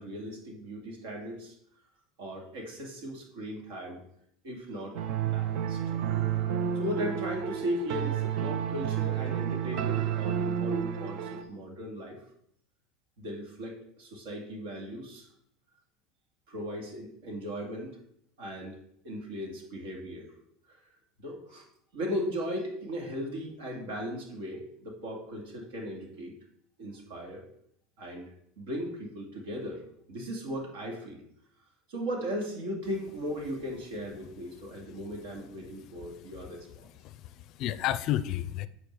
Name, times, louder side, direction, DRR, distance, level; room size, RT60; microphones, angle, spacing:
voice 1, 0.0-1.5 2.2-4.0 4.4-5.0 5.2-5.8 6.7-12.2 13.2-15.3 16.5-17.9 18.4-18.8 19.0-20.3 21.2-21.7 21.9-26.4 26.8-27.4 28.0-28.3 28.6-29.8 30.1-31.2 31.9-36.7, equal, 75° right, 0 dB, 2.6 m, -37 dB
sound 1, 4.9-11.4, right 9 dB, 60° right, 0.7 m, -30 dB
voice 2, 35.6-36.5 36.8-38.7, left 13 dB, 55° left, 16 dB, 0.4 m, -34 dB
8.8 x 4.5 x 4.8 m, 0.71 s
supercardioid pair, 100°, 0 cm